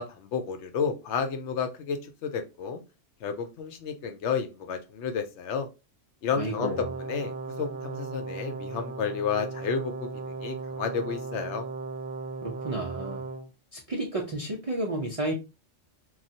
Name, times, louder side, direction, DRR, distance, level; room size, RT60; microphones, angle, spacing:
voice 1, 0.0-2.8 3.2-5.7 6.2-7.3 7.6-11.7, left 6 dB, 80° left, 0.9 m, -31 dB
voice 2, 6.3-6.9 12.4-13.2 13.7-15.3, right 1 dB, 50° right, 0.4 m, -32 dB
Brass instrument, 6.6-13.5, right 3 dB, 75° right, 0.9 m, -37 dB
3.1 x 2.3 x 2.7 m
omnidirectional pair, 1.2 m